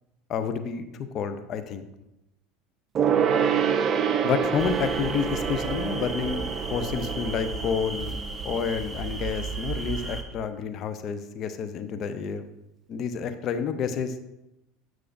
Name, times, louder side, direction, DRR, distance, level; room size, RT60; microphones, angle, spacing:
voice 1, 0.3-0.8 1.1-1.9 4.2-8.2 8.4-12.5 12.9-14.1, left 6 dB, 45° left, 9 dB, 0.7 m, -29 dB
Gong, 2.9-8.8 9.1-9.2, right 7 dB, 40° right, 0.6 m, -27 dB
sound 1, 4.6-10.2, right 3 dB, 15° right, 1.1 m, -34 dB
8.4 x 6.2 x 2.6 m, 0.90 s
hypercardioid pair, 80°, 0 cm